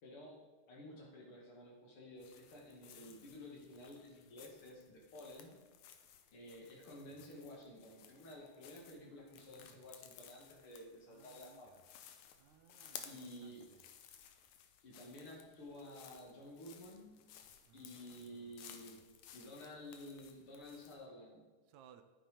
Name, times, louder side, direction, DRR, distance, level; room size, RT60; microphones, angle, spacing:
voice 1, 0.0-5.6 6.3-11.8 13.0-13.7 14.8-17.3 17.7-19.0 19.3-21.5, left 1 dB, 45° left, -1 dB, 2.7 m, -53 dB
sound 1, 2.2-21.0, left 9 dB, 75° left, 2.1 m, -58 dB
voice 2, 8.9-9.8 11.1-11.8 12.4-13.8 17.6-19.0 21.7-22.0, right 9 dB, 75° right, 8 dB, 2.0 m, -65 dB
10.5 x 9.1 x 5.1 m, 1.4 s
omnidirectional pair, 3.6 m